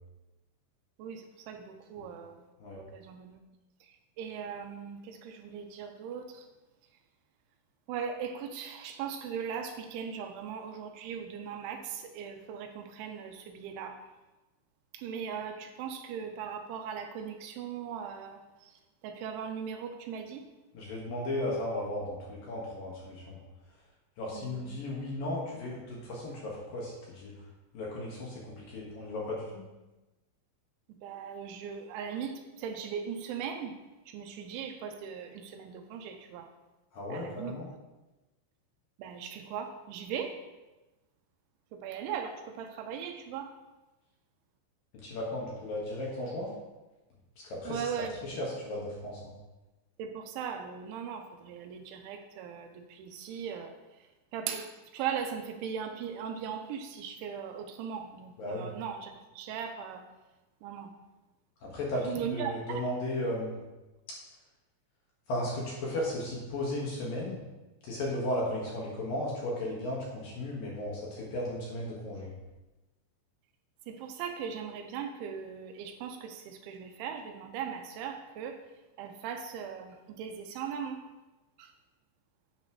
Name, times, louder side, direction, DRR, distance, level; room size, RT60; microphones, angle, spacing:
voice 1, 1.0-2.3 2.9-3.4 4.2-6.2 7.9-14.0 14.9-18.4 19.0-20.4 24.4-24.7 31.0-33.8 34.1-36.5 37.1-37.6 39.0-40.3 41.7-43.5 47.7-48.1 50.0-53.7 54.3-60.0 60.6-60.9 62.1-62.9 73.9-78.6 79.0-81.0, right 7 dB, 80° right, 6 dB, 3.0 m, -39 dB
voice 2, 20.7-23.4 24.2-27.3 27.7-29.6 36.9-37.7 44.9-46.5 47.4-47.9 48.2-49.3 58.4-58.7 61.6-63.6 65.3-67.4 67.8-72.3, left 1 dB, 60° left, -4 dB, 2.8 m, -35 dB
10.5 x 9.6 x 3.2 m, 1.1 s
omnidirectional pair, 5.6 m